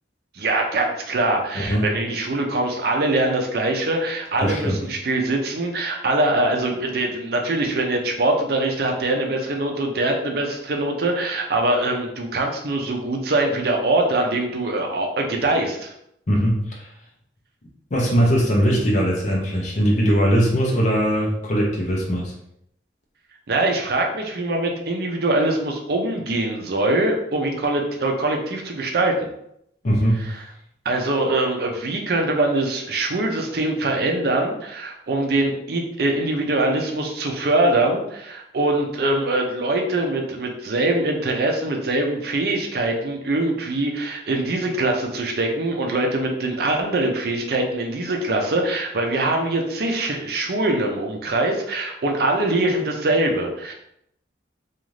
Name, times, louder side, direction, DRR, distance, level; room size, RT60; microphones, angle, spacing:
voice 1, 0.3-15.9 23.5-29.3 30.2-30.4 30.8-53.7, right 2 dB, 60° right, 2 dB, 0.5 m, -23 dB
voice 2, 4.4-4.7 16.3-16.9 17.9-22.3 29.8-30.2, equal, 40° left, -2 dB, 0.6 m, -20 dB
2.5 x 2.4 x 3.1 m, 0.75 s
head